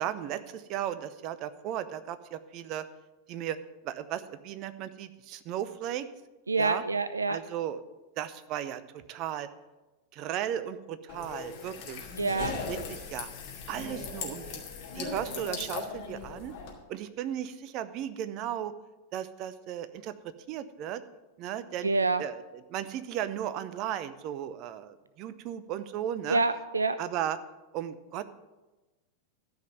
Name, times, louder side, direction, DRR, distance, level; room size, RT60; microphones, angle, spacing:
voice 1, 0.0-2.8 3.3-3.6 3.8-6.1 6.6-6.8 7.3-7.8 8.2-9.5 10.1-12.0 12.7-13.3 13.7-14.6 14.9-16.5 16.9-18.7 19.1-20.1 20.5-21.0 21.4-21.9 22.2-22.4 22.7-26.4 27.0-27.4 27.7-28.2, right 11 dB, 40° right, 13 dB, 0.7 m, -35 dB
voice 2, 6.5-7.4 12.2-12.6 21.8-22.2 26.3-27.0, right 3 dB, 80° right, 13 dB, 0.4 m, -27 dB
sound 1, 11.1-16.7, left 5 dB, 45° left, 2.4 m, -38 dB
13.0 x 5.4 x 7.8 m, 1.1 s
figure-of-eight pair, 90°, 0 cm